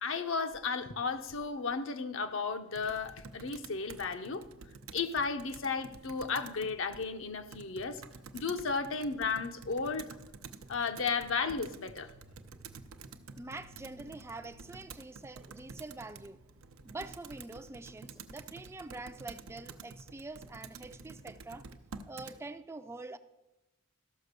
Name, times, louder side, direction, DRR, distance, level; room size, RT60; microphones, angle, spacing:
voice 1, 0.0-4.4 4.9-8.0 8.3-10.1 10.7-12.1, left 4 dB, 70° left, 0.8 m, -34 dB
Computer keyboard, 2.7-22.4, right 4 dB, 85° right, 0.7 m, -50 dB
voice 2, 13.4-16.4 16.8-21.7 22.1-23.2, right 2 dB, 15° right, 0.4 m, -45 dB
13.5 x 6.0 x 6.6 m
head